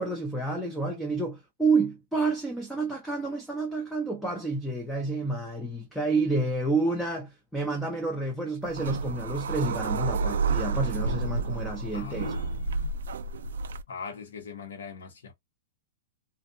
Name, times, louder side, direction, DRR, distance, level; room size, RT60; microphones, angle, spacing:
voice 1, 0.0-12.3, right 3 dB, ahead, 0.4 m, -29 dB
sound 1, 8.6-13.8, right 4 dB, 80° right, 0.3 m, -30 dB
voice 2, 11.9-12.9 13.9-15.3, left 5 dB, 85° left, 1.2 m, -40 dB
2.5 x 2.5 x 2.6 m
hypercardioid pair, 145°, 0 cm